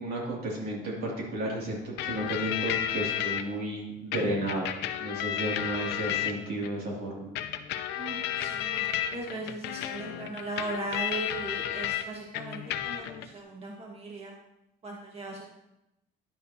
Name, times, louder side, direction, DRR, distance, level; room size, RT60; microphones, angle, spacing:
voice 1, 0.0-7.3, right 1 dB, 70° right, -3 dB, 2.6 m, -33 dB
sound 1, 2.0-3.4 4.1-6.7 7.3-12.0 12.3-13.3, left 11 dB, 90° left, 0.7 m, -32 dB
voice 2, 8.0-14.3 14.8-15.5, right 2 dB, 35° right, -2 dB, 1.6 m, -38 dB
10.5 x 8.2 x 2.8 m, 0.88 s
cardioid pair, 110°, 17 cm